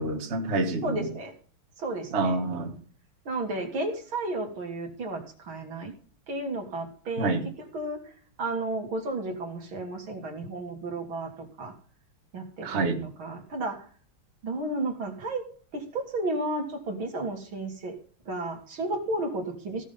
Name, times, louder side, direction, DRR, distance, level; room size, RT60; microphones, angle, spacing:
voice 1, 0.0-1.1 2.1-2.7 7.2-7.5 12.6-13.0, right 2 dB, 35° right, 4 dB, 1.8 m, -27 dB
voice 2, 0.8-1.3 1.8-2.4 3.2-5.9 6.3-7.3 7.7-8.1 8.4-11.7 12.3-12.9 13.2-13.8 14.4-15.4 15.7-18.0 18.3-19.8, right 2 dB, 75° right, 3 dB, 3.2 m, -32 dB
16.0 x 6.4 x 5.5 m, 0.44 s
omnidirectional pair, 2.2 m